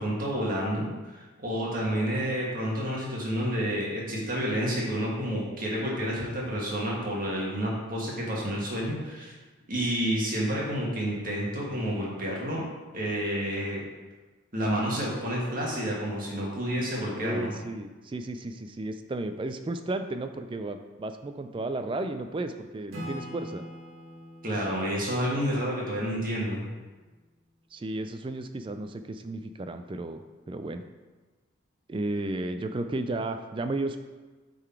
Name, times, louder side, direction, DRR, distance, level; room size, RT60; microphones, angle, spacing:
voice 1, 0.0-9.4 9.7-12.6 12.9-13.8 14.5-17.5 24.4-26.7, equal, 40° right, -4 dB, 1.7 m, -29 dB
voice 2, 17.2-23.6 27.7-30.2 30.5-30.8 31.9-34.0, right 2 dB, 25° right, 8 dB, 0.3 m, -33 dB
Acoustic guitar / Strum, 22.9-26.5, equal, 80° right, 1.7 m, -43 dB
8.0 x 3.9 x 4.4 m, 1.3 s
head